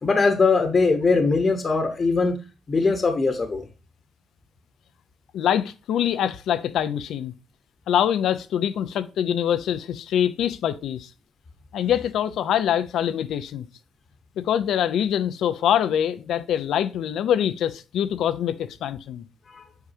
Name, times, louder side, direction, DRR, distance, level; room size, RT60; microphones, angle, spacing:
voice 1, 0.0-2.3 2.7-3.6 19.5-19.6, left 4 dB, 30° left, 1.1 m, -21 dB
voice 2, 5.3-7.3 7.9-11.1 11.7-13.7 14.4-19.2, left 9 dB, 80° left, 0.6 m, -24 dB
8.0 x 4.9 x 2.7 m
cardioid pair, 130°, 0 cm